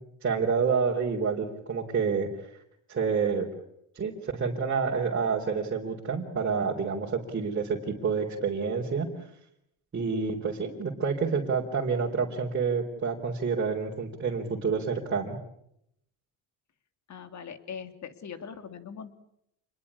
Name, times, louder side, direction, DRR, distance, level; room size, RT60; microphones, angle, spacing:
voice 1, 0.0-2.5 2.9-3.5 3.9-9.1 9.9-15.4, right 5 dB, 30° right, -2 dB, 4.0 m, -28 dB
voice 2, 17.1-19.1, left 7 dB, 40° left, 9 dB, 3.0 m, -41 dB
28.5 x 21.5 x 8.6 m, 0.76 s
cardioid pair, 120°, 42 cm